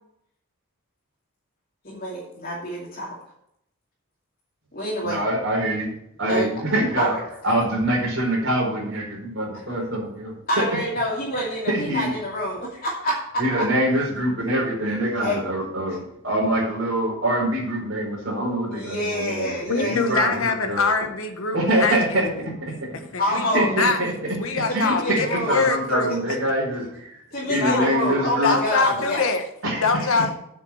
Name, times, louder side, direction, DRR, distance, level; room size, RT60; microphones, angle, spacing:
voice 1, 1.8-3.2 4.7-5.2 6.3-6.5 7.0-7.2 10.5-13.2 15.2-15.4 18.7-20.1 23.2-23.7 24.7-25.7 27.3-29.3 30.2-30.3, equal, 40° left, -8 dB, 2.6 m, -27 dB
voice 2, 5.0-5.9 6.2-7.2 7.4-10.7 11.7-12.2 13.4-20.8 21.5-23.0 23.3-24.1 24.7-28.6 29.6-30.1, right 1 dB, 55° right, -2 dB, 4.3 m, -25 dB
voice 3, 19.7-22.0 23.1-24.0 24.4-26.2 27.6-27.9 28.4-29.4 29.8-30.3, left 4 dB, 65° left, 6 dB, 1.2 m, -23 dB
8.2 x 6.2 x 7.1 m, 0.75 s
head